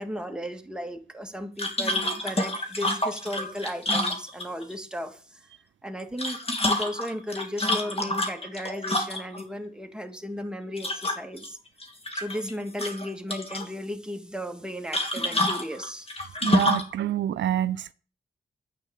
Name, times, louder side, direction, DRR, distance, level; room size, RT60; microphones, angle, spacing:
voice 1, 0.0-5.4 5.8-6.4 6.7-11.6 12.1-16.1, equal, 5° right, 2.5 m, -35 dB
sound 1, 1.6-4.7 6.0-9.4 10.8-11.5 11.8-12.5 12.8-13.7 14.9-16.9, left 1 dB, 30° left, 2.8 m, -28 dB
voice 2, 16.4-17.9, right 12 dB, 90° right, 0.5 m, -27 dB
10.0 x 9.1 x 7.4 m
cardioid pair, 50°, 19 cm